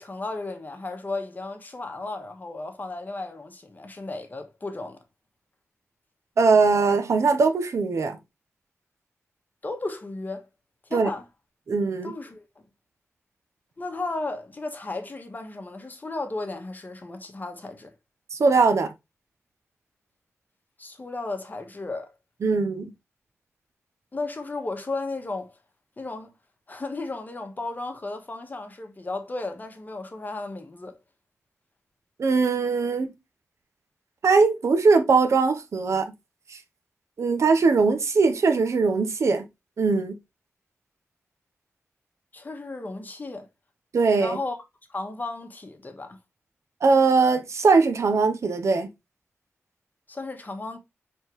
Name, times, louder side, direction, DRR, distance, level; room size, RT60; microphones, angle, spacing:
voice 1, 0.0-5.0 9.6-10.5 10.9-11.2 12.0-12.4 13.8-17.9 20.8-22.1 24.1-25.6 26.0-26.3 26.7-31.0 42.3-43.5 44.2-44.6 44.9-46.2 50.1-50.8, left 2 dB, 35° left, 1.1 m, -34 dB
voice 2, 6.4-8.2 10.9-11.1 11.7-12.1 18.3-18.9 22.4-22.9 32.2-33.1 34.2-36.1 37.2-39.4 39.8-40.2 43.9-44.4 46.8-48.9, right 4 dB, 75° right, 0.7 m, -21 dB
4.5 x 3.6 x 2.9 m
cardioid pair, 65°, 5 cm